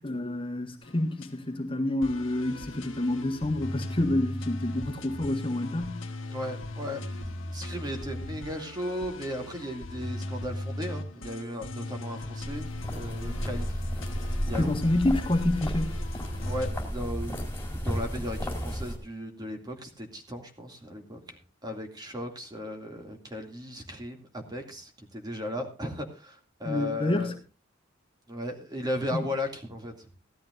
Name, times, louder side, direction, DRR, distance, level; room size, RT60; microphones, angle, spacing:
voice 1, 0.0-6.0 14.6-15.9 26.6-27.3 29.1-29.3, left 1 dB, 30° left, 1.6 m, -28 dB
sound 1, 0.8-1.3 2.0-16.7, left 1 dB, 90° left, 1.5 m, -38 dB
voice 2, 6.3-13.8 14.5-14.7 16.4-27.3 28.3-30.1, left 1 dB, 20° right, 2.4 m, -36 dB
sound 2, 12.4-19.0, equal, 10° left, 3.9 m, -33 dB
17.5 x 13.0 x 2.6 m
head